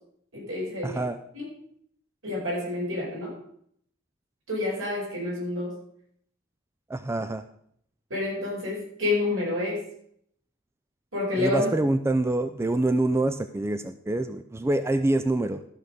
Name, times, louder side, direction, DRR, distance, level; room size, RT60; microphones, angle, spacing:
voice 1, 0.3-1.0 1.3-1.5 2.2-3.3 4.5-5.8 8.1-9.8 11.1-11.7, left 2 dB, 70° right, -3 dB, 4.9 m, -28 dB
voice 2, 0.8-1.2 6.9-7.4 11.4-15.6, right 2 dB, 15° right, 10 dB, 0.3 m, -26 dB
13.0 x 6.3 x 5.1 m, 0.67 s
head